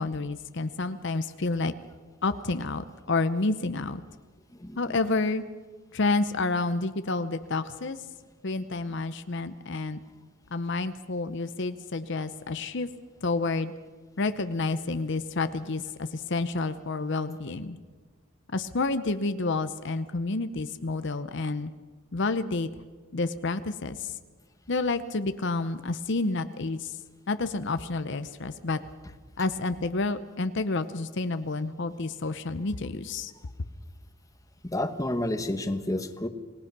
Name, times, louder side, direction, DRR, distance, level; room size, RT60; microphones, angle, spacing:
voice 1, 0.0-1.7 2.2-4.0 4.8-5.4 5.9-8.0 8.4-10.0 10.5-12.9 13.2-13.7 14.2-17.8 18.5-21.7 22.1-22.7 23.1-24.2 24.7-27.0 27.3-28.8 29.4-33.3, left 3 dB, 60° left, 11 dB, 0.8 m, -29 dB
voice 2, 4.6-5.0 34.6-36.3, left 1 dB, 15° left, 8 dB, 1.3 m, -30 dB
27.5 x 19.0 x 6.1 m, 1.5 s
head